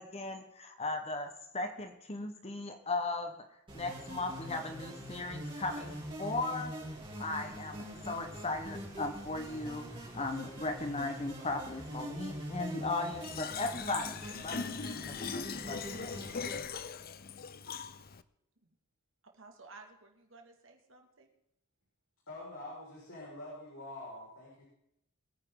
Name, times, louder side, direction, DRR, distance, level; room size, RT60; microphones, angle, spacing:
voice 1, 0.0-3.4 3.7-6.7 7.2-14.7 15.1-16.4, left 2 dB, 30° left, 6 dB, 1.4 m, -37 dB
sound 1, 3.7-16.6, equal, 25° right, 4.4 m, -44 dB
Fill (with liquid), 13.2-18.2, left 6 dB, 45° left, 0.6 m, -40 dB
voice 2, 19.2-21.3, right 3 dB, 60° right, 3 dB, 2.5 m, -55 dB
voice 3, 22.3-24.6, left 1 dB, 70° left, -6 dB, 5.8 m, -46 dB
22.0 x 9.7 x 4.0 m, 0.79 s
head